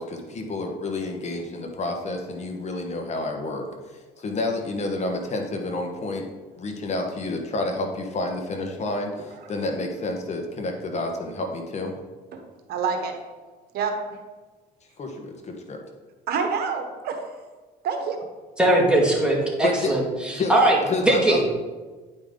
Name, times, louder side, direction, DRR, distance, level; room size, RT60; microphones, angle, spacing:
voice 1, 0.0-6.3 6.6-12.0 15.0-15.8 19.6-19.9 20.3-20.5 20.9-21.4, left 2 dB, 40° left, 3 dB, 1.2 m, -29 dB
voice 2, 12.7-13.2 13.7-14.2 16.3-17.3 17.8-18.2, right 5 dB, 70° right, 5 dB, 1.1 m, -27 dB
voice 3, 18.6-20.0 20.5-20.8 21.0-21.4, right 1 dB, 5° right, -2 dB, 2.0 m, -19 dB
9.5 x 5.2 x 3.7 m, 1.3 s
cardioid pair, 110°, 17 cm